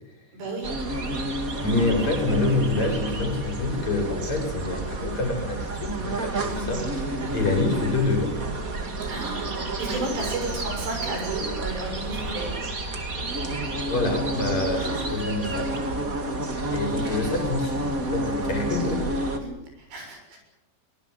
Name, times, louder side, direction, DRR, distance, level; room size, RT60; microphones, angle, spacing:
voice 1, 0.3-0.7 6.5-6.8 9.1-12.5 14.7-15.2 16.9-17.4 19.4-20.4, right 2 dB, 75° right, 3 dB, 9.0 m, -33 dB
sound 1, 0.6-19.4, right 2 dB, 30° right, 1.6 m, -30 dB
voice 2, 1.6-8.3 13.9-16.0 16.7-17.8 18.1-19.0, left 2 dB, 40° left, 2 dB, 7.0 m, -26 dB
23.5 x 21.5 x 8.0 m, 0.88 s
omnidirectional pair, 5.0 m